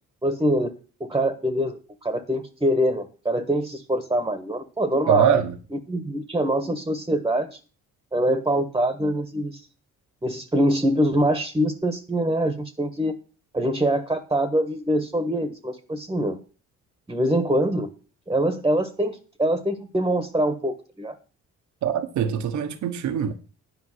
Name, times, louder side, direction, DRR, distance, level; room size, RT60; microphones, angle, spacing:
voice 1, 0.2-0.7 1.0-5.4 5.7-7.6 8.1-9.6 10.2-13.1 13.5-16.4 17.1-17.9 18.3-21.1, right 1 dB, 15° right, 1.4 m, -24 dB
voice 2, 5.1-5.5 21.8-23.3, right 8 dB, 70° right, 1.2 m, -23 dB
10.0 x 5.1 x 7.8 m
cardioid pair, 90°, 30 cm